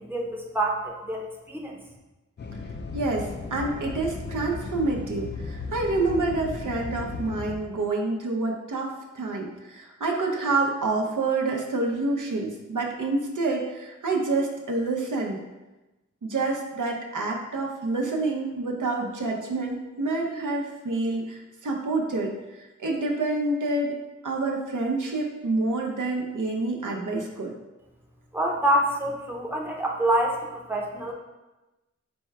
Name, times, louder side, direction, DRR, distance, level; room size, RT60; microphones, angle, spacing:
voice 1, 0.0-1.8 28.3-31.1, right 1 dB, 5° right, 0 dB, 0.6 m, -26 dB
sound 1, 2.4-7.6, left 4 dB, 35° left, 0.4 m, -36 dB
voice 2, 2.9-15.4 16.2-22.3 22.8-23.9 24.2-27.5, right 3 dB, 80° right, 0 dB, 0.6 m, -27 dB
4.3 x 2.2 x 4.6 m, 1.1 s
wide cardioid pair, 50°, 30 cm